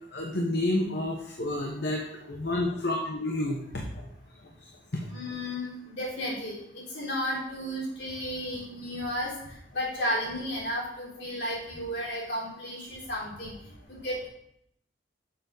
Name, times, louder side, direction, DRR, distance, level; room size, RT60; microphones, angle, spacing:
voice 1, 0.1-3.8 4.6-5.1, left 1 dB, 60° left, 0 dB, 1.0 m, -30 dB
voice 2, 5.1-9.3 9.7-13.5 13.9-14.3, equal, 80° left, -5 dB, 3.4 m, -33 dB
7.0 x 6.7 x 3.9 m, 0.74 s
head